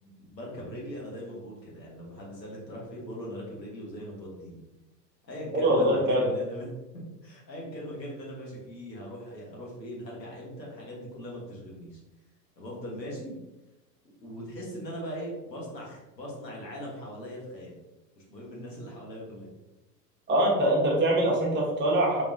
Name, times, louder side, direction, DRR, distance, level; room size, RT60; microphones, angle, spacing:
voice 1, 0.0-4.6 5.2-6.7 6.9-12.0 12.6-13.4 14.2-17.7 18.2-19.5, equal, 85° left, -4 dB, 1.3 m, -40 dB
voice 2, 5.5-6.3 20.3-22.2, right 1 dB, 20° right, -2 dB, 1.0 m, -23 dB
3.4 x 3.2 x 2.6 m, 1.0 s
figure-of-eight pair, 85°, 49 cm